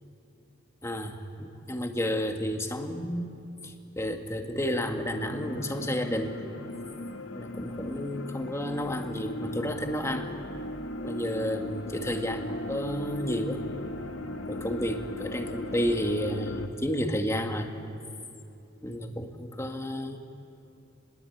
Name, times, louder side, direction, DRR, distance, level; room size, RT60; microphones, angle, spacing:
voice 1, 0.8-6.4 7.3-10.3 11.0-13.6 14.5-17.7 18.8-20.2, equal, 15° left, 4 dB, 1.9 m, -31 dB
sound 1, 5.1-16.7, left 1 dB, 85° left, 1.7 m, -37 dB
29.5 x 21.5 x 8.7 m, 2.7 s
head